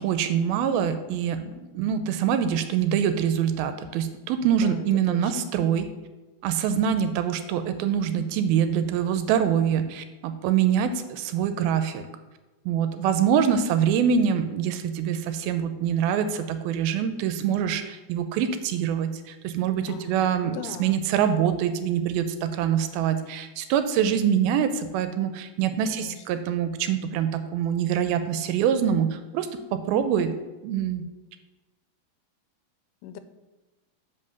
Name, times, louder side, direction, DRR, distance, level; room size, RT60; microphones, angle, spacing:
voice 1, 0.0-5.9 6.4-12.1 12.7-30.3 30.6-31.0, right 8 dB, 80° right, 10 dB, 2.3 m, -25 dB
voice 2, 4.6-5.5 19.9-21.0 25.9-26.2 33.0-33.2, left 7 dB, 90° left, 11 dB, 2.6 m, -40 dB
7.6 x 5.5 x 6.5 m, 1.2 s
omnidirectional pair, 4.5 m